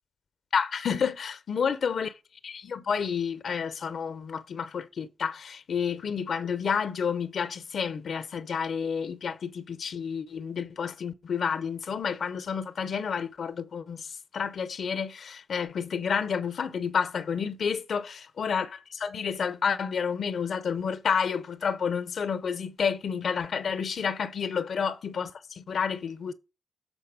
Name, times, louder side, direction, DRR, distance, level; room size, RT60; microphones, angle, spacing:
voice 1, 0.5-2.1 2.4-26.3, left 6 dB, 70° left, 0.6 m, -30 dB
8.9 x 4.0 x 5.0 m
supercardioid pair, 45°, 0 cm